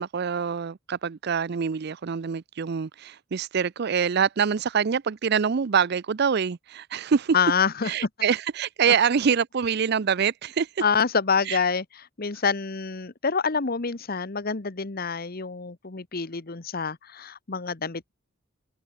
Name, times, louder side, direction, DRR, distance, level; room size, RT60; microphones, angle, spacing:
voice 1, 0.0-7.4 7.9-10.8 11.5-11.6, right 6 dB, 55° right, 0.5 m, -25 dB
voice 2, 7.3-8.1 10.8-18.1, left 5 dB, 50° left, 1.1 m, -27 dB
head